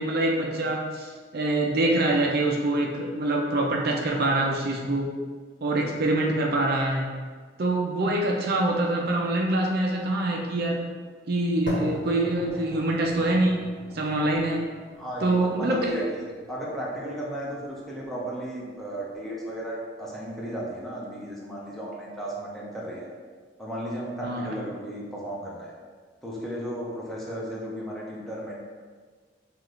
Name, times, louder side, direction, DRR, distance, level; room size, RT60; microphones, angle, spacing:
voice 1, 0.0-5.1 5.6-7.1 7.6-10.8 11.3-13.7 13.9-14.7 15.2-15.9 24.2-24.5, right 2 dB, 55° right, 0 dB, 0.5 m, -25 dB
sound 1, 11.7-19.7, equal, 75° left, 1.1 m, -41 dB
voice 2, 15.0-16.2 16.5-23.1 23.6-25.7 26.2-28.5, right 1 dB, ahead, -5 dB, 0.7 m, -34 dB
5.7 x 2.5 x 3.2 m, 1.5 s
head